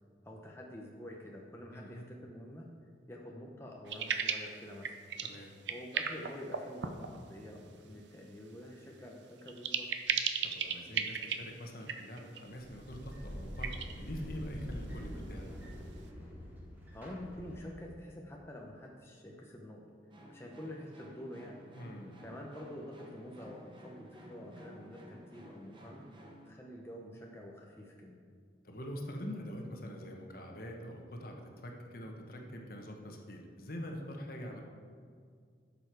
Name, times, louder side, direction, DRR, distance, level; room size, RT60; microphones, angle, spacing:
voice 1, 0.2-2.7 3.1-4.9 5.7-10.0 16.9-19.8 20.3-21.6 22.2-26.1 26.4-28.2, left 1 dB, 15° left, -1 dB, 0.7 m, -47 dB
voice 2, 1.7-2.0 5.2-5.5 10.4-15.5 21.7-22.1 28.6-34.6, equal, 55° left, 1 dB, 1.3 m, -44 dB
sound 1, 3.9-4.6 4.8-5.4 5.7-7.2 9.5-11.4 11.8-12.4 13.6-13.9, right 7 dB, 75° right, 0.7 m, -35 dB
sound 2, 12.6-18.1, equal, 10° right, 2.0 m, -45 dB
sound 3, 20.1-26.5, equal, 25° right, 1.0 m, -54 dB
11.5 x 6.9 x 4.6 m, 2.1 s
head